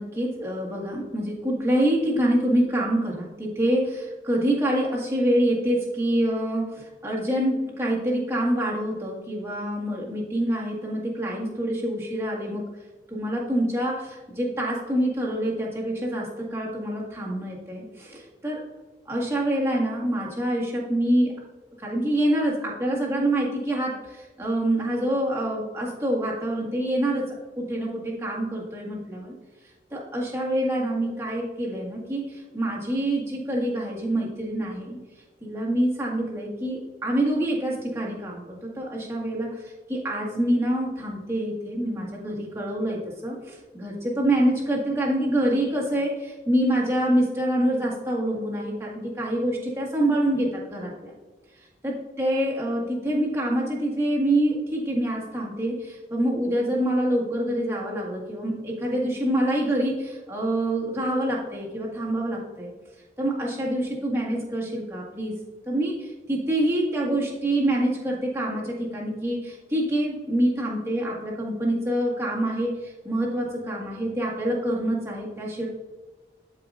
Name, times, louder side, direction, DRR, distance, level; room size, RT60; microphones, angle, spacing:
voice 1, 0.0-12.6 13.1-18.6 19.1-21.4 21.8-29.3 29.9-35.0 35.4-39.6 39.9-51.1 51.8-62.7 63.2-65.4 65.7-75.7, right 1 dB, 15° right, -4 dB, 1.8 m, -26 dB
12.0 x 4.9 x 2.5 m, 1.3 s
head